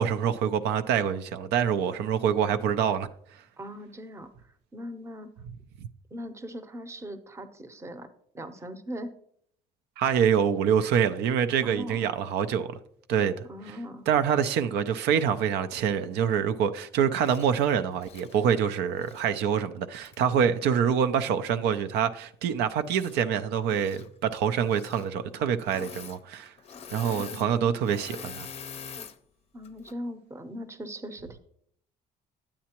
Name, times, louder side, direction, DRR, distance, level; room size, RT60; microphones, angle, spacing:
voice 1, 0.0-3.1 10.0-12.7 13.1-13.5 14.1-26.5 26.9-28.5, right 8 dB, 80° right, 0.5 m, -26 dB
voice 2, 3.6-4.3 4.7-5.3 6.1-8.1 8.3-9.1 11.6-12.0 13.5-14.1 29.5-31.4, equal, 15° right, 0.7 m, -39 dB
Engine / Mechanisms, 17.2-17.5 17.9-19.3 20.0-20.2 22.8-23.4 23.7-24.1 24.6-25.1 25.6-26.2 26.4-29.2 29.6-29.9, left 6 dB, 40° left, 0.5 m, -44 dB
9.2 x 8.6 x 2.9 m
cardioid pair, 110°, 17 cm